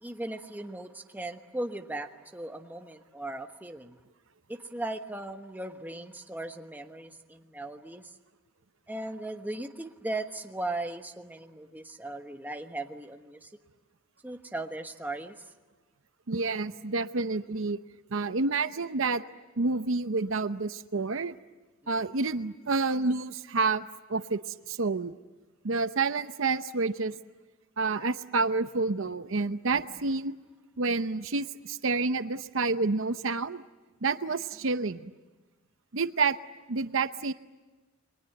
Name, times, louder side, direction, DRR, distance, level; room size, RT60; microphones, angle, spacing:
voice 1, 0.0-4.0 4.5-8.2 8.9-13.5 14.2-15.5 22.1-22.2 29.7-29.8, right 2 dB, 10° right, 5 dB, 1.2 m, -38 dB
voice 2, 16.3-17.8 18.1-19.2 19.6-21.3 21.9-25.2 25.6-27.1 27.8-30.3 30.8-33.6 34.0-35.1 35.9-36.4 36.7-37.3, right 3 dB, 60° right, 11 dB, 0.8 m, -29 dB
29.5 x 22.0 x 7.9 m, 1.2 s
head